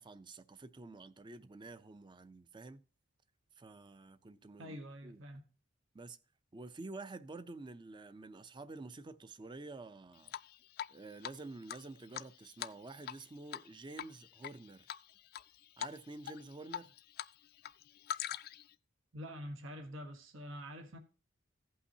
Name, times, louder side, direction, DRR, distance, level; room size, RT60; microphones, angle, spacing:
voice 1, 0.0-2.8 3.6-4.8 5.0-5.2 5.9-6.2 6.5-10.3 10.9-14.9 15.8-16.9, right 3 dB, 25° right, 0.4 m, -49 dB
voice 2, 4.6-5.4 19.1-21.0, equal, 75° right, 1.1 m, -46 dB
Drip, 10.3-10.9 11.2-11.3 11.7-13.2 13.5-13.7 14.0-14.5 14.9-15.4 15.8-16.0 16.3-17.3 17.6-18.7, left 10 dB, 50° left, 0.3 m, -42 dB
15.5 x 5.6 x 2.8 m
head